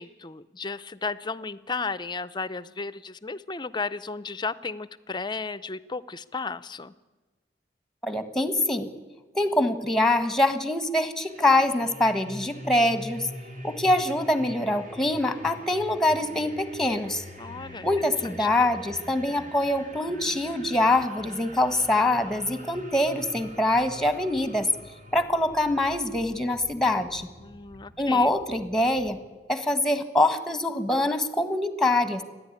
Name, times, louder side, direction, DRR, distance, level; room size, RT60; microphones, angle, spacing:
voice 1, 0.0-6.9 17.4-17.9 18.2-18.5 27.4-28.3, left 4 dB, 25° left, 16 dB, 0.6 m, -34 dB
voice 2, 8.0-8.9 9.3-13.3 13.6-17.2 17.8-24.7 25.1-27.3 28.0-29.2 29.5-32.2, left 1 dB, 5° left, 9 dB, 1.4 m, -24 dB
sound 1, 11.2-29.2, equal, 45° right, 3.2 m, -44 dB
28.0 x 10.5 x 9.8 m, 1.2 s
head